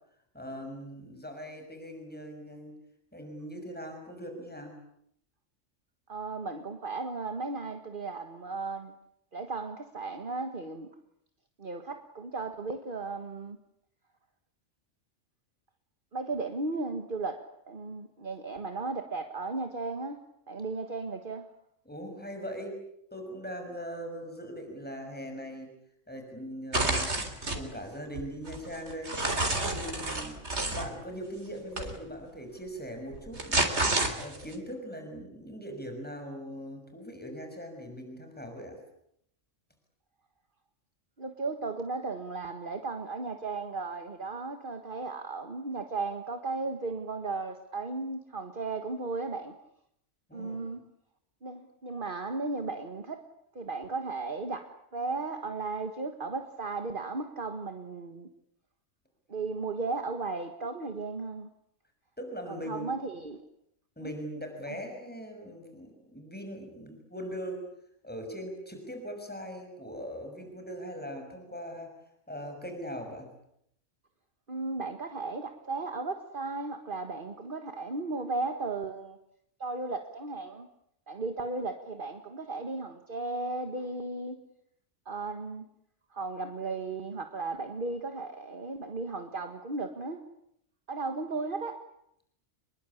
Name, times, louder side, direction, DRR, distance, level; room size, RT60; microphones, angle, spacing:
voice 1, 0.3-2.7 3.1-4.7 21.9-22.8 23.1-25.7 26.1-27.1 27.5-29.2 29.4-30.3 30.6-38.8 50.3-50.6 62.2-62.9 64.0-67.6 68.0-71.9 72.3-73.3, equal, 5° left, 6.2 m, -40 dB
voice 2, 6.1-8.9 9.3-10.9 11.6-13.6 16.1-20.2 20.5-21.5 41.2-49.6 50.3-50.8 51.4-53.3 53.6-58.3 59.3-61.5 62.5-63.4 64.0-64.1 64.7-64.8 74.5-79.2 79.6-80.7 81.1-84.4 85.1-85.7 86.1-90.2 90.9-91.9, right 3 dB, 40° right, 1.8 m, -35 dB
sound 1, 26.7-27.6 28.2-30.9 31.8-31.9 33.1-34.5, right 2 dB, 60° right, 4.1 m, -29 dB
28.5 x 22.0 x 8.6 m
omnidirectional pair, 1.3 m